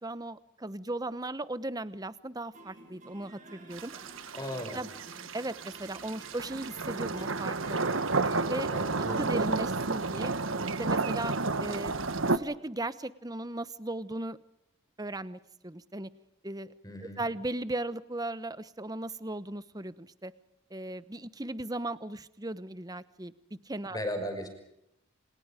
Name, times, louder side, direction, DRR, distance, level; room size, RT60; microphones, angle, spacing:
voice 1, 0.0-3.9 4.7-4.9 5.3-7.8 8.5-8.7 9.1-10.3 10.8-11.3 11.6-12.0 12.3-14.4 15.0-16.1 16.4-16.7 17.2-20.3 20.7-23.3 23.6-24.0, right 2 dB, 20° right, 14 dB, 1.0 m, -37 dB
sound 1, 2.5-8.7, right 2 dB, 40° right, 6.0 m, -53 dB
sound 2, 3.7-12.4, right 3 dB, 70° right, 1.4 m, -31 dB
voice 2, 4.3-4.8 8.7-9.3 16.8-17.2 23.9-24.5, equal, 20° left, 6 dB, 5.8 m, -36 dB
28.5 x 28.5 x 5.1 m, 0.80 s
head